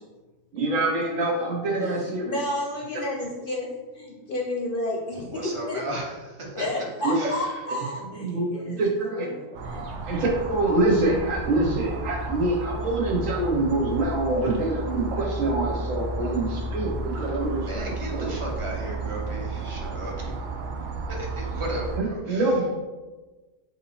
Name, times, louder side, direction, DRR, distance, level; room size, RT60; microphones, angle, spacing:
voice 1, 0.5-2.4 2.9-3.0 7.0-7.3 8.2-9.4 10.1-18.3 22.0-22.7, right 2 dB, 80° right, 0 dB, 1.3 m, -25 dB
voice 2, 1.7-3.7 3.9-5.8 6.5-8.8 9.2-9.9, left 1 dB, 55° left, -2 dB, 0.7 m, -31 dB
voice 3, 5.1-7.7 17.5-20.4 21.1-22.7, right 1 dB, 30° right, -2 dB, 0.7 m, -36 dB
sound 1, 9.5-22.0, right 2 dB, 65° right, 0.5 m, -32 dB
3.6 x 2.9 x 4.2 m, 1.2 s
omnidirectional pair, 1.4 m